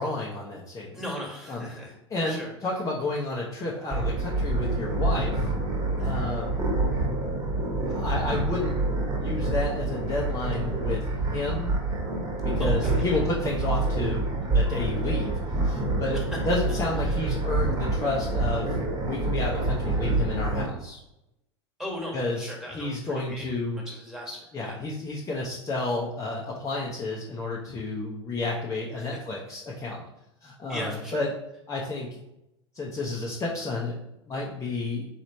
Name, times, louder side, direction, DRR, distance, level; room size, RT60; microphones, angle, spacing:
voice 1, 0.0-1.0 1.5-1.7 2.1-5.5 6.0-6.6 7.8-8.7 9.2-11.0 11.3-11.8 12.4-21.0 22.1-23.8 24.5-30.0 30.4-30.9 31.1-31.3 31.7-32.2 32.7-34.0 34.3-35.0, left 2 dB, 20° left, -4 dB, 0.8 m, -31 dB
voice 2, 0.9-2.5 6.0-6.3 12.6-13.2 16.1-16.2 17.0-17.2 21.8-24.8 28.9-29.2 30.7-31.2, equal, ahead, -2 dB, 1.6 m, -38 dB
sound 1, 3.9-20.6, right 2 dB, 25° right, 1.4 m, -27 dB
4.0 x 3.1 x 4.0 m, 0.87 s
hypercardioid pair, 90°, 15 cm